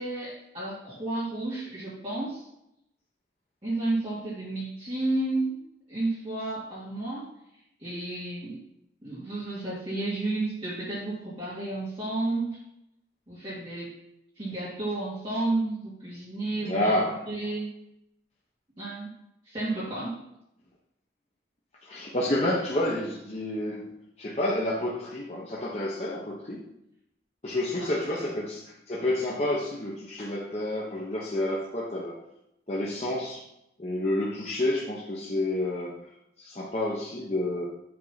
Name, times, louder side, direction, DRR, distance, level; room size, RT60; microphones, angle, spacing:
voice 1, 0.0-2.5 3.6-5.6 5.9-7.3 7.8-8.6 9.0-12.6 13.3-14.0 14.4-16.9 17.3-17.7 18.8-19.1 19.4-20.1 27.8-27.9, right 2 dB, 30° right, -11 dB, 2.4 m, -31 dB
voice 2, 16.6-17.2 21.8-26.6 27.4-32.1 32.7-33.4 33.8-35.9 36.4-37.6, left 1 dB, 35° left, -5 dB, 1.0 m, -29 dB
7.8 x 3.7 x 5.7 m, 0.80 s
head